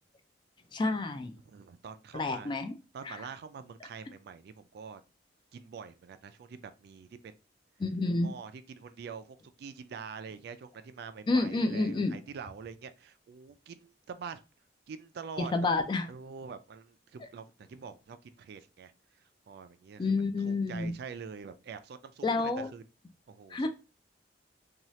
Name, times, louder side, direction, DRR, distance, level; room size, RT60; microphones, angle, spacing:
voice 1, 0.7-1.3 2.1-2.7 3.0-3.2 7.8-8.3 11.3-12.1 15.4-16.1 20.0-20.9 22.2-22.7 23.5-23.7, left 3 dB, 25° left, 0.3 m, -29 dB
voice 2, 1.4-2.5 2.9-5.0 5.5-7.3 8.2-14.4 14.9-15.7 16.1-18.9 19.5-20.0 20.5-22.8 23.3-23.7, right 6 dB, 60° right, 0.3 m, -45 dB
2.8 x 2.3 x 3.0 m
head